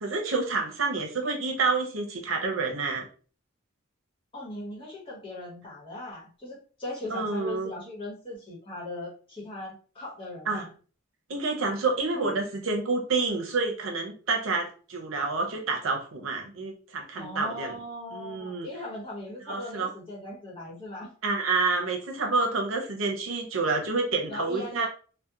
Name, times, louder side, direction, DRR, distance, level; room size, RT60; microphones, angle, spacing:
voice 1, 0.0-3.0 7.1-7.7 10.5-10.6 11.3-17.7 18.1-18.7 19.5-19.9 21.2-24.9, right 3 dB, 85° right, 2 dB, 0.7 m, -28 dB
voice 2, 4.3-10.6 12.1-12.4 17.1-21.1 24.3-24.9, left 1 dB, 25° left, -4 dB, 1.0 m, -39 dB
2.8 x 2.1 x 2.4 m, 0.39 s
head